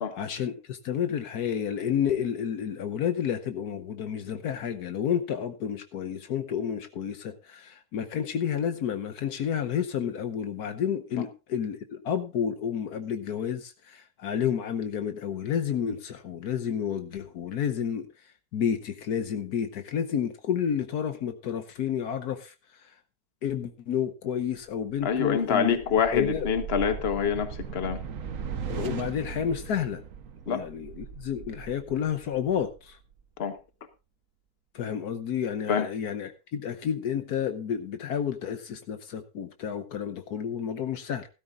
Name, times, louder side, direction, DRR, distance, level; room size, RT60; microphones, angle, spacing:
voice 1, 0.1-18.1 18.5-22.5 22.8-22.9 23.4-25.8 26.1-26.5 28.7-30.0 30.5-33.0 34.7-41.3, left 8 dB, 75° left, 8 dB, 1.4 m, -30 dB
sound 1, 24.9-33.2, right 6 dB, 60° right, 1.3 m, -39 dB
voice 2, 25.0-28.0 30.5-30.6 33.4-33.6 35.7-35.9, left 7 dB, 40° left, 10 dB, 1.4 m, -26 dB
16.5 x 13.0 x 2.5 m, 0.29 s
omnidirectional pair, 1.7 m